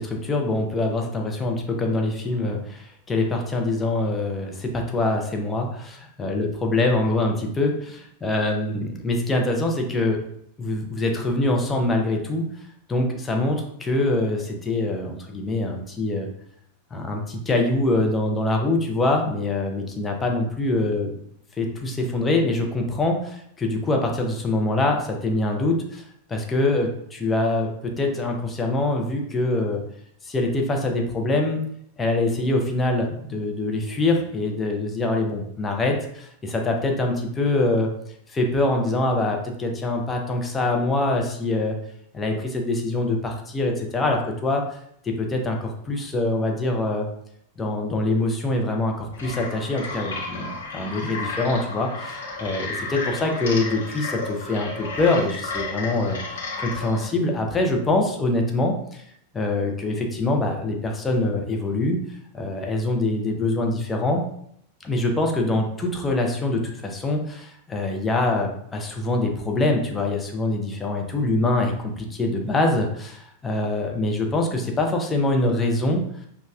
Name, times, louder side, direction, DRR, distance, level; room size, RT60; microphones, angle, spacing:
voice 1, 0.0-7.7 8.2-10.2 10.6-12.5 12.9-16.3 16.9-21.1 21.6-26.0 26.3-29.8 30.2-31.6 32.0-37.9 38.3-41.8 42.1-44.6 45.0-47.1 47.6-59.0 59.3-62.0 62.3-64.3 64.8-76.0, left 2 dB, 15° left, 2 dB, 0.6 m, -24 dB
sound 1, 49.1-57.1, left 3 dB, 65° left, 0.9 m, -32 dB
5.1 x 2.4 x 2.4 m, 0.71 s
figure-of-eight pair, 90°, 0 cm